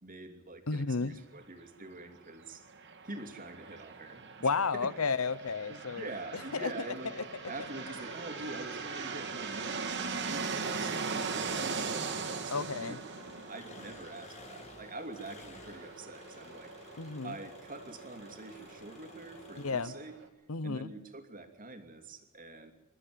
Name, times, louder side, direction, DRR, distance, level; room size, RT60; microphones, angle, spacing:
voice 1, 0.0-2.6 3.0-4.6 5.7-13.0 13.5-16.7 17.2-20.2 20.6-22.7, right 2 dB, 40° right, 6 dB, 2.7 m, -45 dB
voice 2, 0.7-1.1 4.4-6.1 6.5-6.7 12.5-13.0 17.0-17.3 19.6-19.9 20.5-20.9, left 4 dB, 70° left, 17 dB, 0.9 m, -32 dB
sound 1, 2.7-20.2, right 4 dB, 55° right, 2.5 m, -40 dB
Engine, 12.1-20.3, left 2 dB, 30° left, 3.9 m, -53 dB
27.5 x 14.0 x 9.5 m, 0.95 s
head